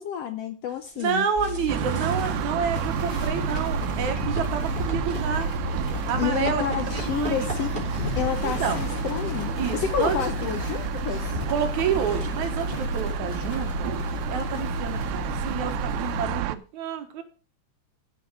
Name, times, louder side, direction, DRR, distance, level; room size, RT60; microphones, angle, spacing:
voice 1, 0.0-1.3 6.2-7.8 8.1-9.5 9.9-11.4, left 9 dB, 70° left, 8 dB, 1.5 m, -29 dB
sound 1, 0.8-2.3 2.6-2.8 3.5-12.8, left 1 dB, 15° right, 3.1 m, -38 dB
voice 2, 1.0-5.5 6.1-7.5 8.4-8.8 9.6-10.2 11.5-13.9 14.3-17.2, right 7 dB, 75° right, 6 dB, 2.6 m, -29 dB
sound 2, 1.4-16.4, left 7 dB, 35° left, 2.2 m, -33 dB
sound 3, 1.7-16.6, right 13 dB, 90° right, 2.2 m, -31 dB
13.5 x 5.8 x 4.9 m, 0.36 s
omnidirectional pair, 3.5 m